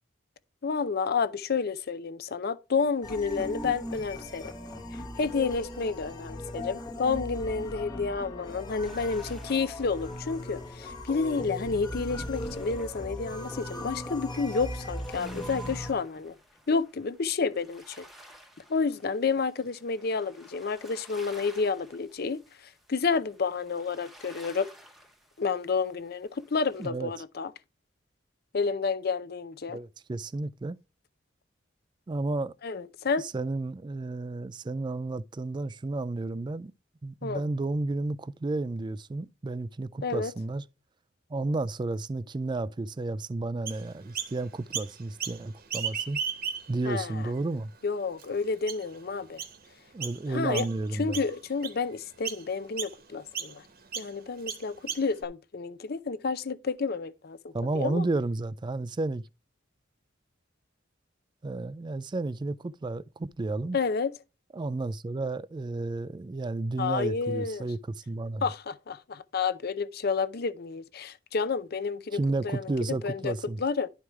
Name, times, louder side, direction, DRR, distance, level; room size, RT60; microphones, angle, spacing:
voice 1, 0.6-4.5 5.2-16.4 16.7-18.1 18.7-24.7 25.4-27.5 28.5-29.8 32.6-33.3 37.2-37.4 40.0-40.3 46.9-47.3 47.8-49.4 50.3-50.7 50.9-53.6 54.0-58.0 63.7-64.1 66.8-67.7 68.4-72.2 72.4-73.9, left 4 dB, 55° left, 0.5 m, -30 dB
sound 1, 3.0-15.9, left 1 dB, 20° left, 1.0 m, -38 dB
sound 2, 8.8-26.9, equal, ahead, 1.0 m, -55 dB
voice 2, 26.8-27.1 29.7-30.8 32.1-32.5 33.2-36.7 37.0-40.6 41.3-46.2 46.7-47.7 49.9-51.2 57.5-59.2 61.4-63.8 64.5-67.8 68.1-68.5 72.1-73.6, right 2 dB, 25° right, 0.3 m, -32 dB
Chirp tweet, 43.7-44.3 44.7-45.4 45.7-46.9 47.4-47.5 48.2-48.3 48.7-49.0 49.4-49.6 50.0-50.2 50.5-50.9 51.1-51.8 52.2-52.4 52.8-52.9 53.3-53.5 53.9-54.1 54.5-55.2, right 7 dB, 50° right, 1.1 m, -35 dB
11.5 x 4.7 x 3.4 m
head